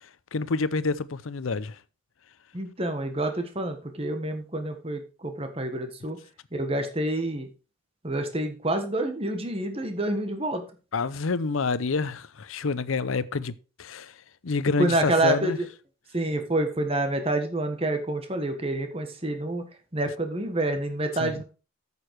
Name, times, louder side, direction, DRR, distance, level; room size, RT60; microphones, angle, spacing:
voice 1, 0.3-1.8 10.9-13.5 13.8-14.1 14.4-15.6 21.2-21.3, left 4 dB, 80° left, 0.6 m, -27 dB
voice 2, 2.5-6.2 6.5-7.5 8.0-10.6 14.8-15.7 16.1-19.6 19.9-21.4, right 2 dB, 30° right, 1.5 m, -28 dB
9.0 x 6.9 x 4.7 m
head